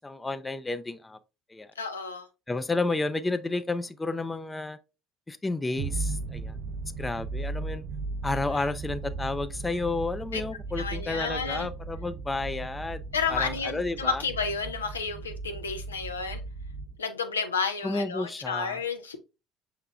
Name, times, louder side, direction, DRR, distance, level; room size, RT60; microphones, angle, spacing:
voice 1, 0.0-1.2 1.5-1.7 2.5-4.8 5.3-6.6 7.0-7.8 8.2-13.0 13.3-14.2 17.8-18.8, left 3 dB, 15° left, 0.4 m, -31 dB
voice 2, 1.8-2.3 8.5-8.6 10.3-10.4 10.8-11.7 13.1-16.4 17.0-19.2, left 5 dB, 90° left, 0.5 m, -31 dB
sound 1, 5.8-17.0, right 3 dB, 60° right, 0.4 m, -36 dB
5.5 x 3.5 x 2.3 m
hypercardioid pair, 60°, 0 cm